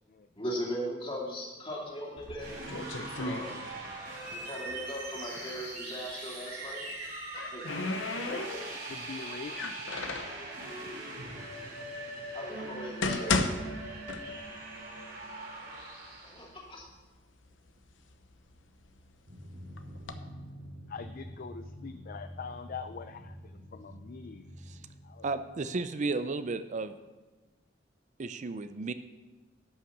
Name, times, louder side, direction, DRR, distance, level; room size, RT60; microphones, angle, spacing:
voice 1, 0.3-2.6 3.1-3.6 4.3-6.9 7.3-7.8 12.3-13.4 16.2-16.8, equal, 30° left, -3 dB, 2.8 m, -38 dB
sound 1, 2.2-4.1 4.3-5.8 6.9-8.9 9.5-10.4 11.2-11.3 11.9-12.0 12.7-14.7 15.0-15.1 15.8-15.9 16.3-16.9 17.5-19.1 19.8-20.1, left 3 dB, 75° left, 0.8 m, -35 dB
sound 2, 2.4-16.5, right 2 dB, 60° right, 4.1 m, -41 dB
voice 2, 8.2-8.5 8.8-10.1 20.9-24.6 25.0-25.3, left 5 dB, 50° left, 10 dB, 0.4 m, -43 dB
Drum, 19.3-25.7, equal, 85° right, 3.1 m, -47 dB
voice 3, 25.2-27.0 28.2-28.9, right 3 dB, 40° right, 11 dB, 0.4 m, -33 dB
11.5 x 5.7 x 7.3 m, 1.2 s
head